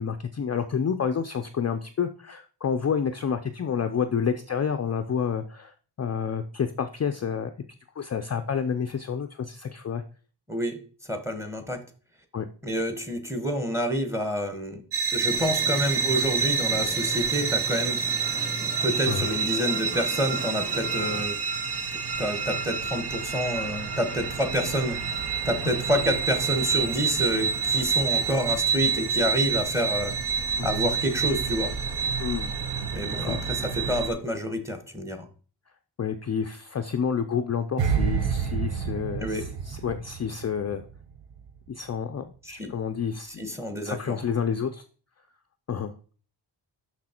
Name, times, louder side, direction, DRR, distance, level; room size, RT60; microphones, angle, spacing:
voice 1, 0.0-5.7 6.0-7.5 8.0-10.0 12.3-12.5 19.1-19.3 25.6-25.7 30.6-30.8 32.2-32.5 33.1-33.4 36.0-40.8 41.7-43.5 43.8-44.8 45.7-45.9, left 7 dB, 35° left, 7 dB, 0.4 m, -29 dB
voice 2, 10.5-10.8 11.1-11.8 12.6-14.8 15.1-18.0 18.8-21.4 22.2-25.0 25.5-30.2 30.6-31.8 32.9-35.3 39.2-39.5 42.6-42.7 43.4-44.2, equal, 5° right, 7 dB, 1.1 m, -28 dB
sound 1, 14.9-34.1, right 6 dB, 60° right, 1.2 m, -28 dB
sound 2, 15.3-21.2, right 1 dB, 40° right, 3.1 m, -38 dB
sound 3, 37.8-41.0 41.2-41.5, right 6 dB, 80° right, 0.9 m, -28 dB
6.2 x 6.0 x 4.3 m, 0.40 s
wide cardioid pair, 155°, 44 cm